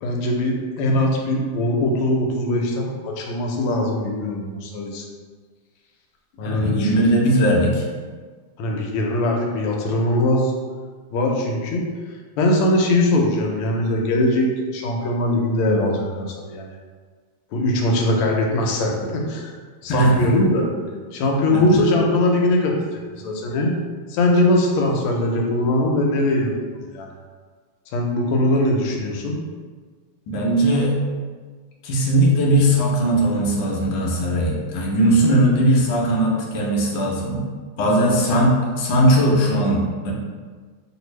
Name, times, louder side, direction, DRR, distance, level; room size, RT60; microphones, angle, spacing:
voice 1, 0.0-5.0 6.4-7.1 8.6-10.5 11.1-11.8 12.4-16.8 17.5-19.5 19.8-20.7 21.1-23.8 24.1-26.5 26.9-27.1 27.9-29.4, left 1 dB, 85° left, 0 dB, 1.5 m, -21 dB
voice 2, 6.4-7.8 19.9-20.2 21.5-21.8 30.3-30.9 31.8-37.4 37.8-40.1, right 1 dB, 70° left, -2 dB, 1.2 m, -19 dB
3.2 x 2.5 x 3.1 m, 1.5 s
omnidirectional pair, 2.3 m